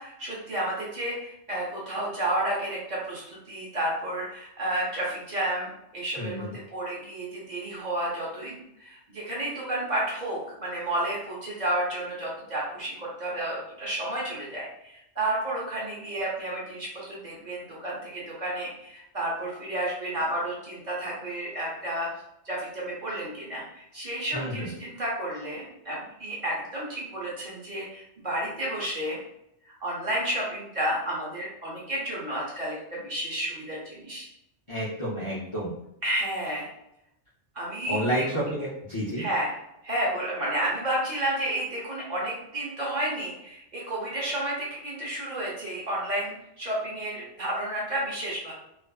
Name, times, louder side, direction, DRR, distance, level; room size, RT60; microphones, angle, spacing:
voice 1, 0.0-22.1 22.4-29.2 29.8-34.3 36.0-36.7 37.5-38.5 39.2-39.6 39.8-48.5, right 1 dB, 45° right, -5 dB, 0.8 m, -31 dB
voice 2, 6.2-6.5 24.3-24.7 34.7-35.7 37.9-39.2, equal, 40° left, -8 dB, 0.5 m, -30 dB
2.5 x 2.3 x 2.3 m, 0.82 s
omnidirectional pair, 1.2 m